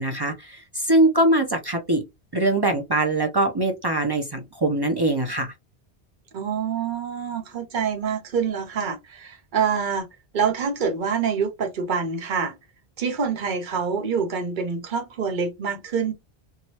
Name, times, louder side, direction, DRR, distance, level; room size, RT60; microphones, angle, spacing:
voice 1, 0.0-2.0 2.3-5.5, right 1 dB, 35° right, 0.4 m, -22 dB
voice 2, 6.3-10.1 10.3-12.6 13.0-16.1, right 6 dB, 55° right, 0.8 m, -26 dB
3.0 x 2.2 x 2.7 m
omnidirectional pair, 1.1 m